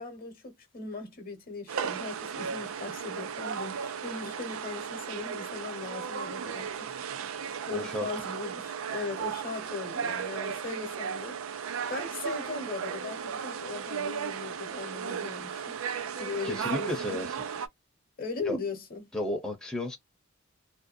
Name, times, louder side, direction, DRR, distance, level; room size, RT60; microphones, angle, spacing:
voice 1, 0.0-6.9 7.7-15.8 16.2-17.2 18.2-19.1, left 4 dB, 45° left, 0.9 m, -39 dB
sound 1, 1.7-17.7, right 7 dB, 70° right, 0.4 m, -35 dB
voice 2, 7.7-8.1 16.4-17.4 18.4-18.6 19.1-20.0, left 2 dB, 5° left, 0.7 m, -33 dB
2.6 x 2.1 x 2.4 m
head